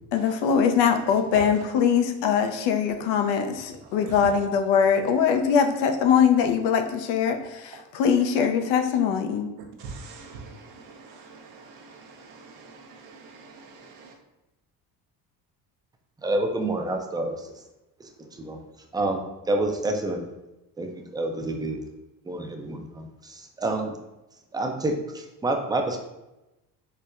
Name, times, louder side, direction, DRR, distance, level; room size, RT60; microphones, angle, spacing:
voice 1, 0.1-9.5, left 7 dB, 75° left, 6 dB, 0.5 m, -22 dB
voice 2, 9.8-14.1, right 4 dB, 75° right, 2 dB, 0.7 m, -44 dB
voice 3, 16.2-17.5 18.0-18.6 18.9-20.3 20.8-21.8 22.3-24.0 24.5-26.0, right 2 dB, 10° right, 3 dB, 0.4 m, -28 dB
4.4 x 2.1 x 2.4 m, 0.98 s
supercardioid pair, 65°, 44 cm